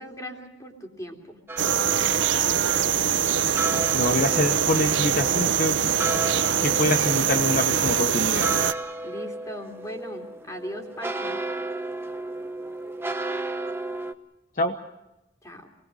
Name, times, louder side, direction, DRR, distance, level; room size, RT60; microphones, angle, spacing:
voice 1, 0.0-1.4 9.0-11.4 15.4-15.7, equal, 15° left, 3 dB, 3.2 m, -38 dB
sound 1, 1.5-14.1, right 2 dB, 10° right, 0.8 m, -34 dB
sound 2, 1.6-8.7, right 8 dB, 70° right, 0.7 m, -23 dB
voice 2, 3.9-5.8 6.6-8.5 14.6-14.8, left 2 dB, 45° left, 5 dB, 1.1 m, -25 dB
27.5 x 20.0 x 6.3 m, 0.92 s
head